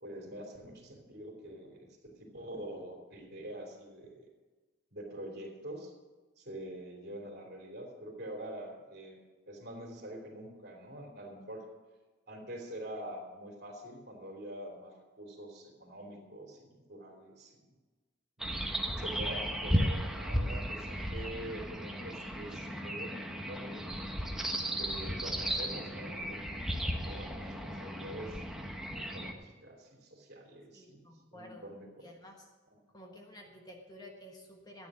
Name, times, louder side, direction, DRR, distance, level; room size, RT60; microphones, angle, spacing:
voice 1, 0.0-4.3 4.9-5.9 6.4-9.2 9.5-11.7 12.3-17.6 18.4-23.9 24.6-28.4 28.9-32.0 32.7-32.8, right 1 dB, 50° right, 2 dB, 3.1 m, -45 dB
sound 1, 18.4-29.3, equal, ahead, 1.0 m, -35 dB
voice 2, 30.7-31.7 32.0-32.5 32.9-34.9, left 1 dB, 20° left, 2 dB, 1.3 m, -51 dB
14.0 x 9.2 x 6.2 m, 1.3 s
head